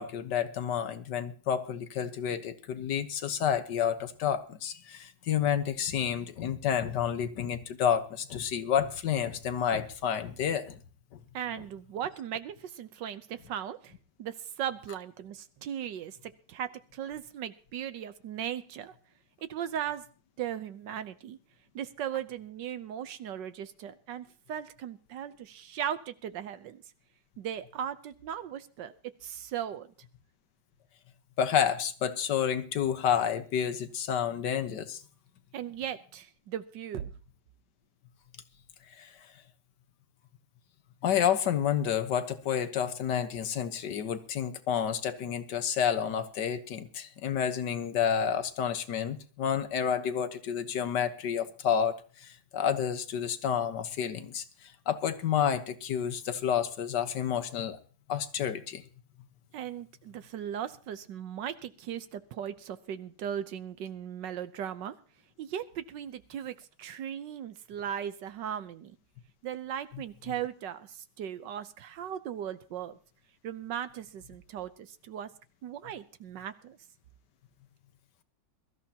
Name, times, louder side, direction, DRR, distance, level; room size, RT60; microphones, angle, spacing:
voice 1, 0.0-10.8 31.4-35.0 39.0-39.1 41.0-57.8 58.1-58.8 69.9-70.0, left 8 dB, 70° left, 11 dB, 1.7 m, -30 dB
voice 2, 11.3-18.9 19.5-20.0 20.4-21.4 21.7-26.8 27.4-29.9 35.5-37.1 59.5-64.9 65.4-69.0 69.4-73.0 73.4-75.3 75.6-76.8, right 9 dB, 80° right, 12 dB, 1.5 m, -38 dB
22.5 x 13.5 x 2.9 m, 0.38 s
omnidirectional pair, 1.9 m